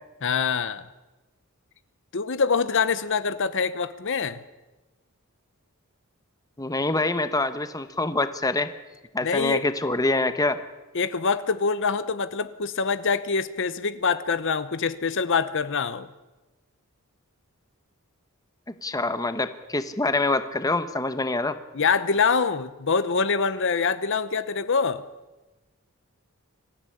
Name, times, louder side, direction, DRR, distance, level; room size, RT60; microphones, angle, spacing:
voice 1, 0.2-0.8 2.1-4.4 9.2-9.6 10.9-16.1 21.7-25.0, left 5 dB, 55° left, 14 dB, 0.9 m, -25 dB
voice 2, 6.6-8.7 9.1-10.6 18.8-21.6, left 2 dB, 15° left, 11 dB, 1.0 m, -25 dB
24.5 x 15.0 x 9.9 m, 1.1 s
head